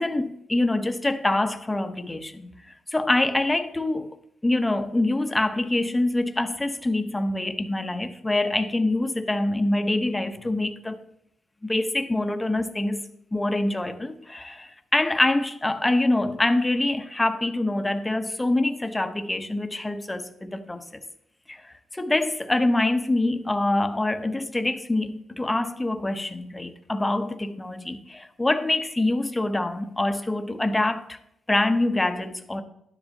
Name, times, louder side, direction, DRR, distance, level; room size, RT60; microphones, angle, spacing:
voice 1, 0.0-2.5 2.9-4.2 4.4-11.0 11.6-21.0 21.5-31.2 31.5-32.6, left 2 dB, 15° left, 0.8 m, -25 dB
12.0 x 10.0 x 2.7 m
cardioid pair, 90°, 0 cm